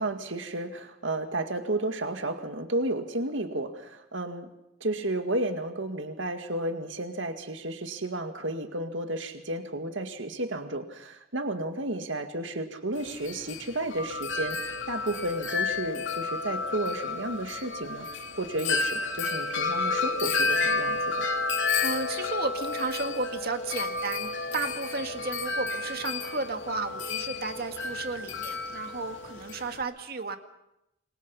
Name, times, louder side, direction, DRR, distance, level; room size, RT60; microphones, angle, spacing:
voice 1, 0.0-4.5 4.8-18.1 18.4-21.3, right 1 dB, 70° right, 6 dB, 2.1 m, -32 dB
Wind chime, 12.9-29.8, left 3 dB, 70° left, 2.8 m, -31 dB
voice 2, 21.8-30.4, right 3 dB, 50° right, 6 dB, 2.2 m, -33 dB
28.5 x 24.0 x 5.6 m, 0.86 s
head